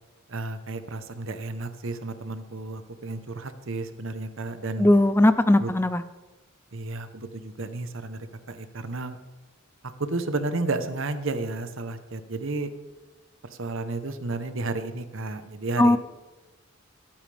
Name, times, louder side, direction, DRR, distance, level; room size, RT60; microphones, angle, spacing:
voice 1, 0.3-4.9 5.6-5.7 6.7-9.2 10.0-12.7 13.5-16.0, right 2 dB, 70° right, 10 dB, 0.9 m, -32 dB
voice 2, 4.8-6.0 15.8-16.0, left 1 dB, 10° left, 13 dB, 0.4 m, -18 dB
22.0 x 8.8 x 3.4 m, 1.2 s
head